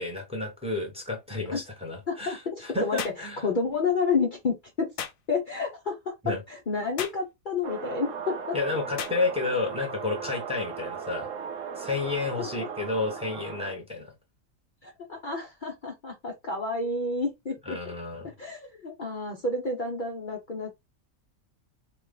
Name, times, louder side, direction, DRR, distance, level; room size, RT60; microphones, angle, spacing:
voice 1, 0.0-3.4 6.2-6.4 8.5-11.3 11.8-14.1 17.6-18.3, left 3 dB, 5° right, 1.3 m, -31 dB
voice 2, 2.1-4.9 5.3-8.6 12.4-12.5 14.8-17.9 18.4-20.7, left 4 dB, 40° left, 0.8 m, -30 dB
sound 1, 3.0-3.2 5.0-5.2 7.0-7.2 9.0-9.2, left 8 dB, 80° left, 1.1 m, -34 dB
sound 2, 7.6-13.7, right 6 dB, 70° right, 1.1 m, -37 dB
3.9 x 3.1 x 3.7 m
omnidirectional pair, 1.4 m